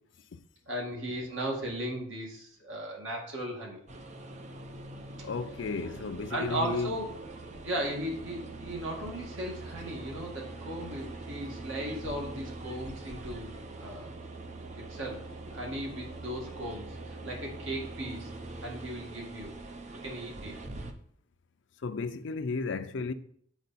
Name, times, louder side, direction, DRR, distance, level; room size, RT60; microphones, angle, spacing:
voice 1, 0.7-3.8 6.3-7.1 7.6-14.1 14.9-18.3 18.6-19.5 20.0-20.6, right 1 dB, 70° right, 1.9 m, -36 dB
sound 1, 3.9-20.9, right 2 dB, 35° right, 0.6 m, -43 dB
voice 2, 5.2-7.0 21.8-23.1, left 4 dB, 60° left, 0.5 m, -33 dB
8.1 x 4.5 x 4.2 m
head